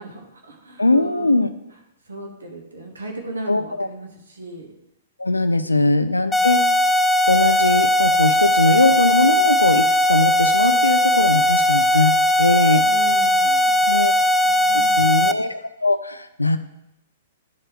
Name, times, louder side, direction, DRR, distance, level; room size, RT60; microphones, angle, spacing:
voice 1, 0.0-1.4 2.1-4.7 12.9-15.1, right 2 dB, 75° right, 2 dB, 1.4 m, -37 dB
voice 2, 0.8-1.5 3.5-3.9 5.2-6.6 7.3-12.9 13.9-14.1 14.7-16.6, left 2 dB, 85° left, 11 dB, 0.4 m, -20 dB
sound 1, 6.3-15.3, equal, 5° left, 0.3 m, -18 dB
10.5 x 4.7 x 3.1 m, 0.86 s
figure-of-eight pair, 110°, 0 cm